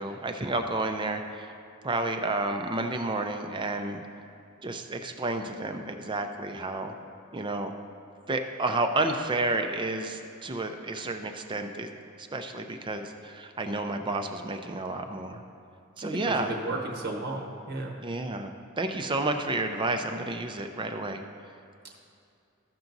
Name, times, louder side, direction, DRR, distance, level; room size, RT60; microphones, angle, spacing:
voice 1, 0.0-1.5 1.8-4.0 4.6-6.9 7.3-7.7 8.3-11.9 12.2-15.4 16.0-16.5 18.0-21.2, right 2 dB, 20° right, 5 dB, 0.5 m, -31 dB
voice 2, 16.0-18.0, right 2 dB, 50° right, 0 dB, 1.0 m, -33 dB
14.0 x 5.9 x 4.0 m, 2.5 s
head